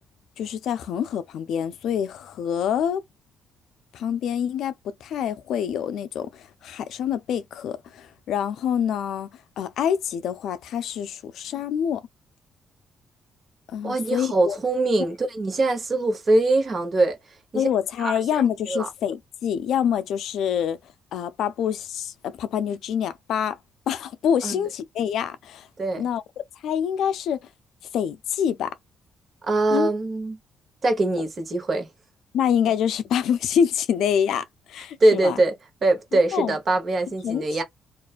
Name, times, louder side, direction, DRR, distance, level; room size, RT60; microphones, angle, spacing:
voice 1, 0.4-3.0 3.9-4.7 5.0-9.3 9.6-12.0 13.7-14.6 17.5-20.8 21.1-23.6 23.9-25.7 26.0-26.2 26.6-27.4 27.9-28.7 29.7-29.9 32.3-35.4 36.1-36.6 37.2-37.6, left 8 dB, 75° left, 0.3 m, -26 dB
voice 2, 13.8-17.2 17.5-17.7 18.0-18.9 24.4-24.6 25.8-26.0 29.5-30.4 30.8-31.9 35.0-37.6, right 2 dB, 40° right, 1.0 m, -23 dB
2.4 x 2.2 x 2.4 m
cardioid pair, 90°, 0 cm